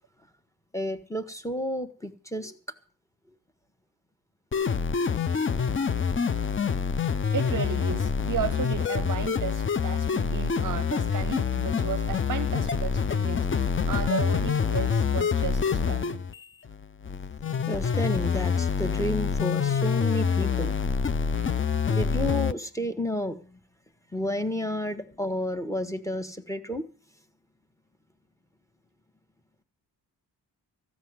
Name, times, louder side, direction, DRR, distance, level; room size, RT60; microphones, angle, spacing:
voice 1, 0.7-2.6 5.1-5.2 17.7-20.8 21.9-23.4 24.1-26.8, left 1 dB, 5° left, 1.1 m, -31 dB
sound 1, 4.5-22.5, left 6 dB, 30° left, 0.5 m, -26 dB
voice 2, 7.3-16.2, right 7 dB, 45° right, 0.7 m, -34 dB
15.0 x 6.1 x 9.4 m
wide cardioid pair, 155°, 43 cm